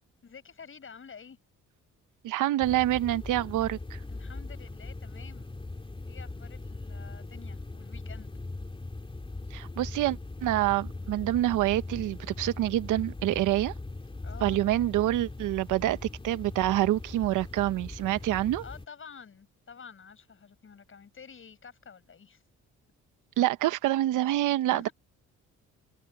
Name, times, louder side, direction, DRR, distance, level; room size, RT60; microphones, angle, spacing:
voice 1, 0.2-1.4 4.1-5.5 6.1-8.3 14.2-14.6 18.6-22.4 24.7-24.9, left 6 dB, 45° left, 7.8 m, -49 dB
voice 2, 2.2-4.0 9.5-13.7 14.4-16.0 16.2-18.6 23.4-24.9, right 14 dB, 85° right, 1.0 m, -27 dB
sound 1, 2.6-18.9, left 2 dB, 15° left, 2.9 m, -40 dB
open air
cardioid pair, 90°, 30 cm